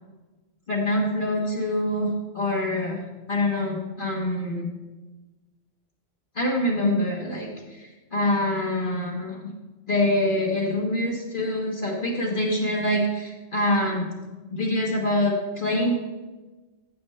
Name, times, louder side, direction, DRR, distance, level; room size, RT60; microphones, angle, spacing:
voice 1, 0.7-3.0 3.3-4.7 6.3-9.4 9.9-14.1 14.5-15.9, left 1 dB, 45° left, -3 dB, 1.6 m, -25 dB
15.0 x 7.1 x 3.3 m, 1.2 s
omnidirectional pair, 1.3 m